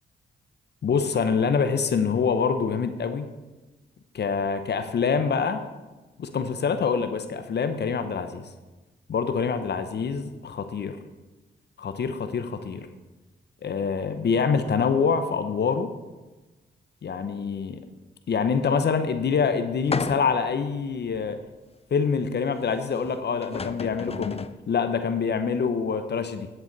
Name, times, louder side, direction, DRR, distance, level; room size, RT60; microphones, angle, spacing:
voice 1, 0.8-3.3 4.1-5.6 6.2-8.4 9.1-11.0 11.8-12.9 13.6-15.9 17.0-17.8 18.3-21.4 21.9-26.5, left 5 dB, 60° left, 9 dB, 0.8 m, -25 dB
sound 1, 19.9-20.5 21.1-21.2 23.1-23.2 23.4-24.6, left 4 dB, 30° left, 0.6 m, -32 dB
9.6 x 8.0 x 4.0 m, 1.2 s
supercardioid pair, 50°, 20 cm